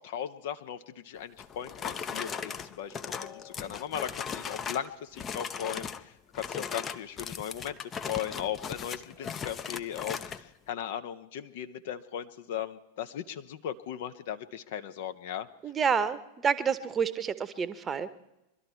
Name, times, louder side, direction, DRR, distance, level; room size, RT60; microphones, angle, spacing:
voice 1, 0.0-15.5, left 10 dB, 55° left, 10 dB, 0.8 m, -37 dB
sound 1, 1.4-4.9 5.2-6.0 6.3-10.4, left 7 dB, 25° left, 0.7 m, -38 dB
voice 2, 15.6-18.1, right 6 dB, 20° right, 14 dB, 0.9 m, -29 dB
23.0 x 12.5 x 4.5 m, 0.94 s
figure-of-eight pair, 90°, 0 cm